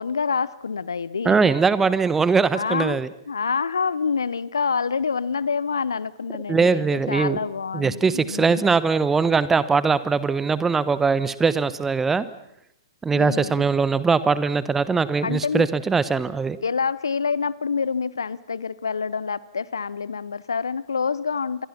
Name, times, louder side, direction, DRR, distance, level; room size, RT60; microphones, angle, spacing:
voice 1, 0.0-1.5 2.5-8.6 13.1-13.6 15.2-15.7 16.6-21.7, left 5 dB, 70° left, 20 dB, 0.9 m, -27 dB
voice 2, 1.2-3.1 6.5-7.4 7.7-12.3 13.0-16.6, right 5 dB, 10° right, 16 dB, 1.1 m, -21 dB
27.5 x 22.0 x 6.0 m, 0.80 s
figure-of-eight pair, 110°, 2 cm